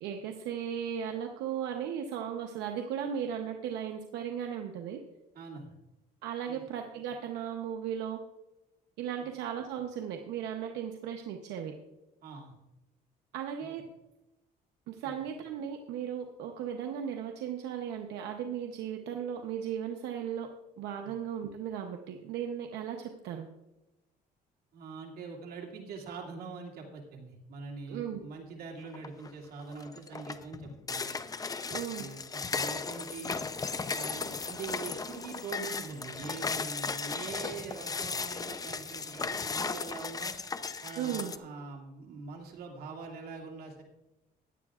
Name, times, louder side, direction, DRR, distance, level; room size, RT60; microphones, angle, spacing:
voice 1, 0.0-5.0 6.2-8.2 9.0-11.7 13.3-13.8 14.9-20.5 20.8-23.5 27.9-28.2 31.7-32.1 40.9-41.3, right 8 dB, 85° right, 4 dB, 0.9 m, -36 dB
voice 2, 5.3-5.7 6.4-6.6 9.2-9.3 12.2-12.5 13.6-13.8 21.0-21.1 24.7-31.2 32.0-32.2 32.5-33.4 33.9-40.3 40.8-43.8, right 4 dB, 65° right, 0 dB, 2.5 m, -43 dB
sound 1, 28.9-29.3 29.7-41.4, left 4 dB, 20° left, 0.6 m, -36 dB
16.0 x 10.5 x 2.4 m, 1.0 s
cardioid pair, 110°, 17 cm